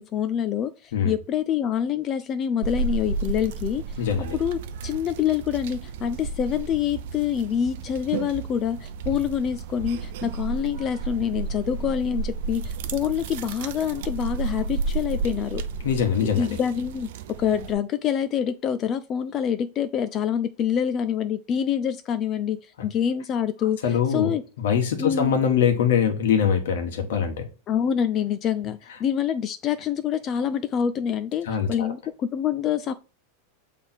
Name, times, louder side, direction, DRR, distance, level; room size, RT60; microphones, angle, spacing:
voice 1, 0.0-3.8 4.3-15.6 16.3-17.1 17.4-24.4 25.0-25.3 27.7-32.9, left 9 dB, 20° left, 0.3 m, -26 dB
sound 1, 2.6-17.7, right 4 dB, 55° right, 0.6 m, -32 dB
voice 2, 4.0-4.4 15.8-16.6 23.8-24.3 24.6-27.4 31.5-31.9, left 7 dB, 70° left, 1.6 m, -23 dB
7.5 x 3.3 x 4.4 m
supercardioid pair, 175°, 0 cm